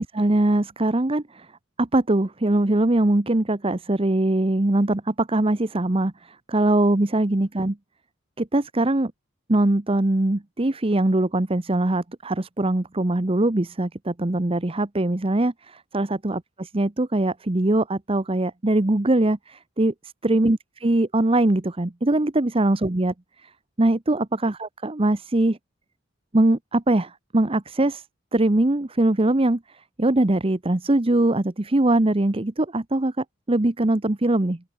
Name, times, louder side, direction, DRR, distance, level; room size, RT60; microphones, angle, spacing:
voice 1, 0.0-1.5 1.8-7.8 8.4-9.1 9.5-19.9 20.2-23.1 23.4-23.5 23.8-25.6 26.3-28.0 28.3-29.6 30.0-34.6, right 1 dB, 25° right, 0.9 m, -22 dB
open air
head